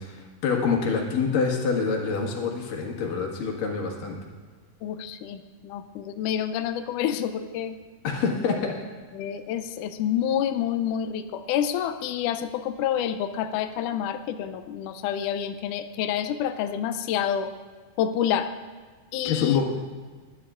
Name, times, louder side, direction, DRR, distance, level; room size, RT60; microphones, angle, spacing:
voice 1, 0.0-4.2 8.0-8.7 19.2-19.7, left 5 dB, 65° left, 0 dB, 3.2 m, -26 dB
voice 2, 4.8-7.8 9.1-17.5 18.0-18.5 19.1-19.6, left 9 dB, 90° left, 9 dB, 1.8 m, -28 dB
20.5 x 11.5 x 2.5 m, 1.4 s
omnidirectional pair, 4.3 m